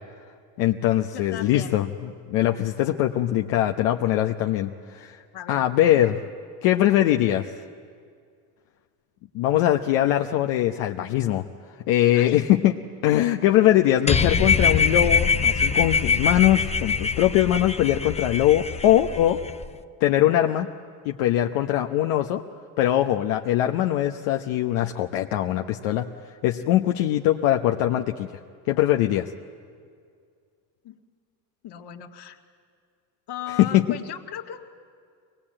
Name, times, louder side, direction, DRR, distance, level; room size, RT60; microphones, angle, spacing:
voice 1, 0.6-5.2 5.5-6.2 6.6-7.6 9.3-11.4 11.9-12.8 13.0-19.4 20.0-20.7 21.0-22.4 22.8-26.1 26.4-28.3 28.7-29.3 33.6-33.8, left 13 dB, 75° left, 3 dB, 1.0 m, -21 dB
voice 2, 1.1-1.8 5.3-5.6 12.1-12.4 30.8-31.0 31.6-32.4 33.3-34.6, left 10 dB, 55° left, 4 dB, 1.8 m, -37 dB
sound 1, 14.1-19.7, left 5 dB, 15° left, 0.7 m, -23 dB
23.0 x 19.5 x 8.8 m, 2.1 s
supercardioid pair, 95°, 48 cm